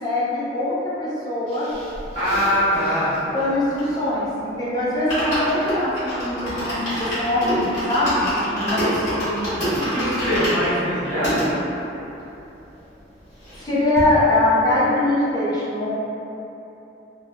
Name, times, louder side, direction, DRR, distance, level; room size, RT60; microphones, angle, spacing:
voice 1, 0.0-1.7 3.3-9.3 13.6-16.0, left 1 dB, 20° left, -9 dB, 0.5 m, -22 dB
sound 1, 1.5-4.2 4.6-4.7 4.9-11.5 12.0-12.1 12.3-12.4 12.7-13.7 14.0-14.1, equal, 40° left, 1.2 m, -27 dB
voice 2, 2.1-3.2 8.6-11.5, equal, 35° right, -17 dB, 0.8 m, -23 dB
3.0 x 2.3 x 2.2 m, 3.0 s
head